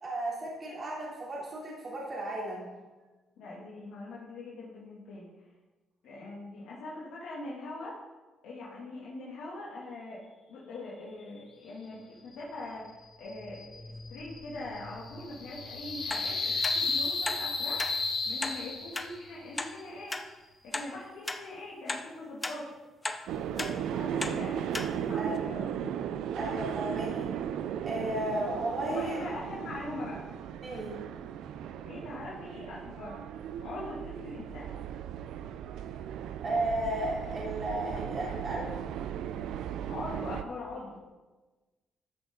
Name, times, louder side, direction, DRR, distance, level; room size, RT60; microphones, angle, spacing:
voice 1, 0.0-2.7 25.2-25.5 26.3-27.3 27.8-29.2 30.6-30.9 36.4-38.7, right 1 dB, 45° right, -5 dB, 3.2 m, -34 dB
voice 2, 3.4-5.3 6.0-8.0 8.4-10.2 10.5-17.8 18.2-20.2 20.6-22.7 23.5-26.2 28.8-30.2 31.9-33.2 33.6-34.7 39.9-41.0, left 2 dB, 85° left, -7 dB, 2.5 m, -42 dB
sound 1, 13.2-19.2, left 3 dB, 65° left, 2.8 m, -34 dB
sound 2, 16.1-16.3 16.6-16.8 17.2-17.4 17.8-17.9 18.4-18.6 18.9-19.1 19.6-19.7 20.1-20.2 20.7-20.9 21.3-21.4 21.9-22.0 22.4-22.6 23.0-23.2 23.6-23.7 24.2-24.4 24.7-24.9 25.4-25.5, left 2 dB, 20° left, 0.9 m, -34 dB
sound 3, 23.3-40.4, right 9 dB, 85° right, 0.5 m, -36 dB
13.0 x 7.2 x 3.9 m, 1.2 s
cardioid pair, 90°, 0 cm